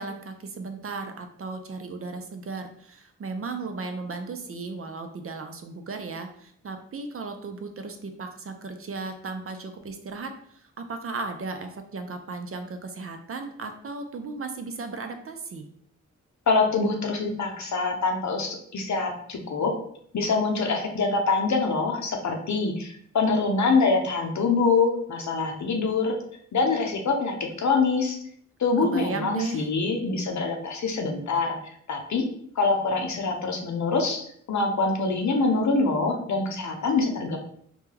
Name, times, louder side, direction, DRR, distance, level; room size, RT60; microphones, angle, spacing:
voice 1, 0.0-15.6 28.8-29.7, right 3 dB, 45° right, 6 dB, 0.5 m, -35 dB
voice 2, 16.5-19.7 20.1-26.2 26.5-28.2 28.6-31.6 31.9-32.2 32.6-37.4, left 4 dB, 65° left, 2 dB, 0.6 m, -25 dB
2.2 x 2.2 x 3.2 m, 0.64 s
cardioid pair, 45°, 31 cm